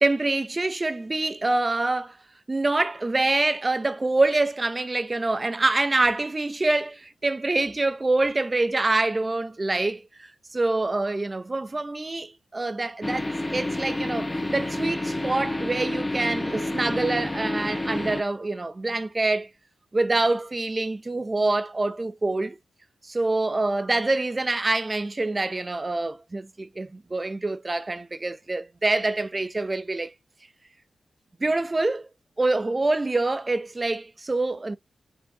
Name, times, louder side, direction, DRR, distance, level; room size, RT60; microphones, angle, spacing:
voice 1, 0.0-2.2 2.5-19.5 19.9-22.6 23.0-30.1 31.4-32.1 32.4-34.8, right 2 dB, 30° right, 0.9 m, -26 dB
sound 1, 13.0-18.2, left 1 dB, 20° left, 1.1 m, -29 dB
5.7 x 5.1 x 3.9 m
cardioid pair, 50°, 0 cm